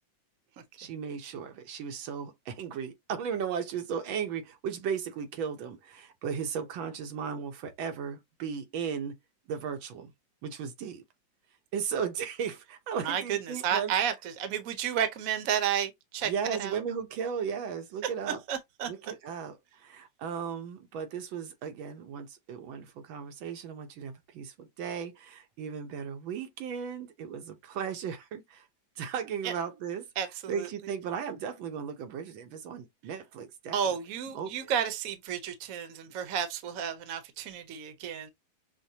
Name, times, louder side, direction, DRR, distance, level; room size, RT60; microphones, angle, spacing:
voice 1, 0.8-9.2 9.5-10.1 10.4-11.0 11.7-13.9 16.2-18.4 18.9-28.7 29.0-30.1 30.5-34.0 34.3-34.7, right 7 dB, 90° right, 1.6 m, -36 dB
voice 2, 13.0-13.4 13.6-16.3 16.6-16.8 18.5-18.9 29.4-29.5 30.2-30.7 33.7-38.3, right 8 dB, 60° right, 1.0 m, -31 dB
6.1 x 2.2 x 2.7 m
omnidirectional pair, 2.1 m